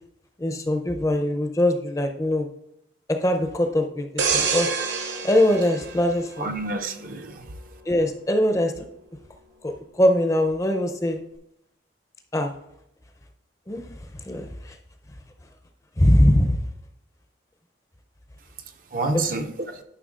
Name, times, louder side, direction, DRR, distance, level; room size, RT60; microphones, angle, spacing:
voice 1, 0.4-2.5 3.1-4.7 5.2-6.5 7.9-8.7 9.6-11.2 12.3-12.5 13.7-13.8 14.2-14.8 16.0-16.6, left 1 dB, 15° left, 0.5 m, -22 dB
sound 1, 4.2-6.9 7.3-7.5, right 5 dB, 70° right, 1.0 m, -27 dB
voice 2, 6.4-7.5 18.9-19.8, right 3 dB, 45° right, 0.5 m, -29 dB
11.0 x 5.8 x 2.4 m
head